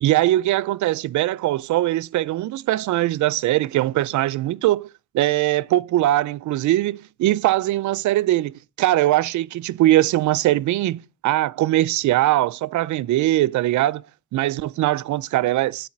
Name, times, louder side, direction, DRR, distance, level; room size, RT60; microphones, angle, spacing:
voice 1, 0.0-4.9 5.1-14.0 14.3-15.9, right 15 dB, 75° right, 0.6 m, -21 dB
10.0 x 4.2 x 5.9 m
cardioid pair, 90°, 30 cm